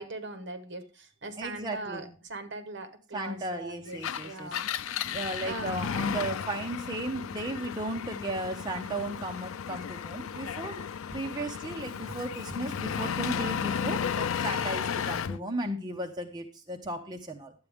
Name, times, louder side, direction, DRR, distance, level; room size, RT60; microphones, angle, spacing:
voice 1, 0.0-4.6 5.4-5.8 14.7-15.1, right 2 dB, 60° right, 9 dB, 1.3 m, -40 dB
voice 2, 1.4-2.1 3.1-4.6 5.0-10.8 11.1-17.5, right 1 dB, 20° right, 3 dB, 0.8 m, -35 dB
Engine, 3.9-15.4, left 7 dB, 80° left, 0.4 m, -34 dB
11.0 x 8.1 x 3.5 m, 0.35 s
head